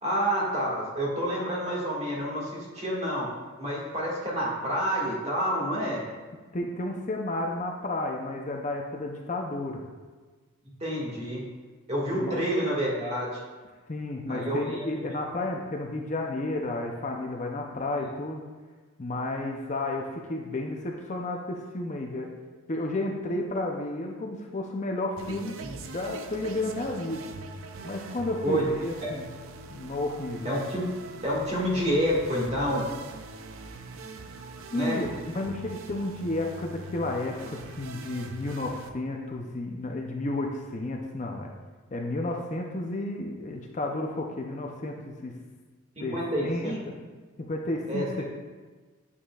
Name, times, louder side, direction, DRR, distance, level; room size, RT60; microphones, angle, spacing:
voice 1, 0.0-3.3 3.6-6.0 10.8-11.4 11.9-13.3 14.3-14.9 18.0-18.1 25.6-25.7 28.4-28.6 30.4-30.8 31.2-32.8 34.7-35.0 46.0-46.8 47.9-48.1, equal, 30° right, -4 dB, 1.8 m, -28 dB
voice 2, 6.5-9.8 12.1-12.4 13.9-18.4 19.0-22.3 22.7-27.2 27.8-29.2 29.7-30.5 34.7-35.1 35.3-41.5 41.9-45.3 46.0-46.2 46.4-46.7 47.4-48.0, left 2 dB, 35° left, 1 dB, 0.5 m, -32 dB
sound 1, 25.2-38.9, right 3 dB, 75° right, 0.5 m, -43 dB
8.9 x 7.1 x 2.4 m, 1.4 s
head